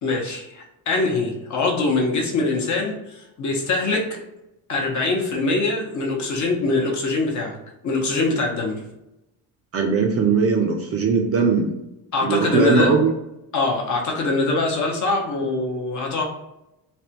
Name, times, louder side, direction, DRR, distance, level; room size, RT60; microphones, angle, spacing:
voice 1, 0.0-4.2 4.7-7.6 7.8-8.8 12.1-12.9 13.5-16.2, left 3 dB, 45° left, 0 dB, 0.8 m, -23 dB
voice 2, 9.7-11.7 12.2-13.1, right 5 dB, 35° right, 2 dB, 0.4 m, -19 dB
3.4 x 2.2 x 2.8 m, 0.90 s
cardioid pair, 125°, 42 cm